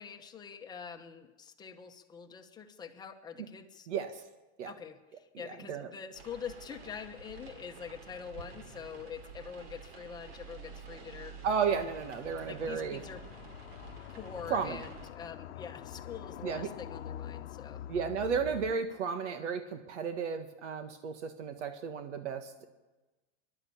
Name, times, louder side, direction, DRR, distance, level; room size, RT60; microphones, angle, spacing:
voice 1, 0.0-3.9 4.6-11.3 12.4-13.2 14.1-17.8, left 7 dB, 10° left, 4 dB, 1.1 m, -45 dB
voice 2, 3.9-4.2 4.6-4.7 5.4-5.9 11.4-13.0 14.5-14.8 16.4-16.7 17.9-22.7, right 6 dB, 85° right, 7 dB, 1.7 m, -33 dB
sound 1, 6.1-15.1, right 5 dB, 60° right, 3.0 m, -50 dB
sound 2, 11.7-18.7, left 11 dB, 80° left, 0.9 m, -46 dB
25.0 x 12.0 x 8.7 m, 1.2 s
supercardioid pair, 160°, 34 cm